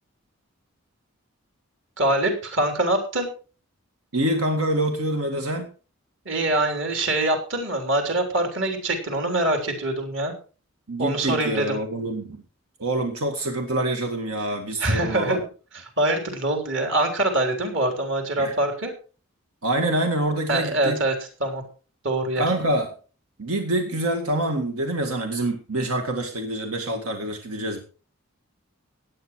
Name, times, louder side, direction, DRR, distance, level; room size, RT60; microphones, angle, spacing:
voice 1, 2.0-3.3 6.3-10.3 11.0-11.8 14.8-15.4 16.0-18.9 20.5-21.1 21.4-21.6 22.0-22.4, right 1 dB, 60° right, 5 dB, 3.7 m, -24 dB
voice 2, 4.1-5.7 10.9-12.4 12.8-15.4 18.4-18.6 19.6-21.0 22.4-22.9 23.4-27.8, right 1 dB, 90° right, 5 dB, 1.9 m, -26 dB
16.0 x 9.4 x 4.6 m, 0.37 s
head